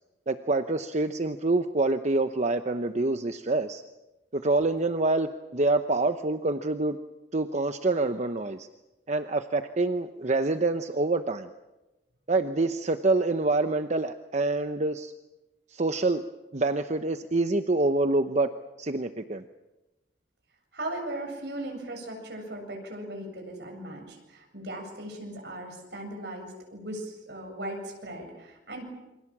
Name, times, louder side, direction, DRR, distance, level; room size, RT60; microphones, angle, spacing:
voice 1, 0.3-3.8 4.3-7.0 7.3-8.7 9.1-11.5 12.3-15.1 15.7-16.3 16.5-18.5 18.8-19.4, right 2 dB, 40° right, 8 dB, 0.9 m, -26 dB
voice 2, 20.7-28.8, right 1 dB, 70° right, 2 dB, 7.8 m, -38 dB
28.0 x 25.5 x 7.4 m, 1.0 s
head